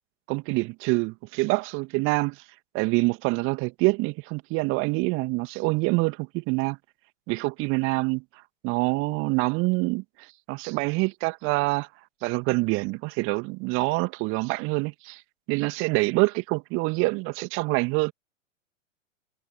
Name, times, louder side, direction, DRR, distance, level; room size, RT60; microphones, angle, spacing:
voice 1, 0.3-2.4 2.7-6.8 7.3-8.2 8.6-10.0 10.5-11.9 12.2-15.2 15.5-18.1, right 26 dB, 35° right, 2.2 m, -26 dB
figure-of-eight pair, 105°, 38 cm